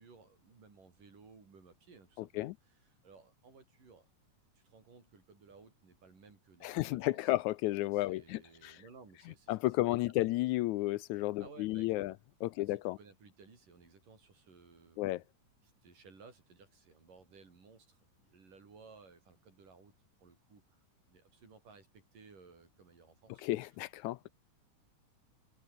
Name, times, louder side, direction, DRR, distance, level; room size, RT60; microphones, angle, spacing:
voice 1, 0.0-4.1 4.6-7.3 7.9-9.6 11.4-12.2 12.6-15.2 15.6-19.9 20.2-20.8 21.1-23.5, right 4 dB, 85° right, 7.4 m, -59 dB
voice 2, 2.2-2.5 6.6-8.8 9.5-12.1 12.4-13.0 15.0-15.2 23.4-24.3, left 17 dB, 80° left, 1.8 m, -33 dB
omnidirectional pair, 3.7 m